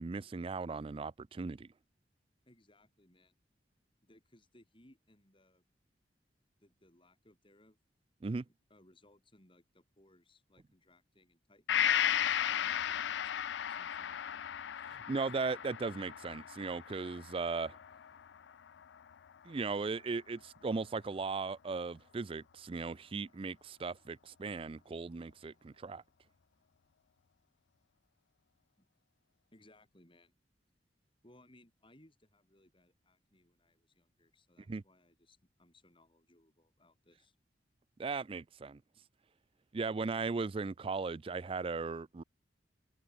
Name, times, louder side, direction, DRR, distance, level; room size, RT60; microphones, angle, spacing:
voice 1, 0.0-1.7 8.2-8.4 14.8-17.8 19.4-26.0 34.7-34.8 38.0-38.8 39.7-42.2, right 4 dB, 30° right, 0.4 m, -37 dB
voice 2, 2.5-3.4 4.0-5.6 6.6-7.8 8.7-12.2 12.4-13.3 13.7-14.4 28.8-28.9 29.5-30.3 31.2-37.4, left 1 dB, 30° left, 7.2 m, -65 dB
Gong, 11.7-19.3 19.7-19.8, left 10 dB, 85° left, 0.4 m, -35 dB
open air
head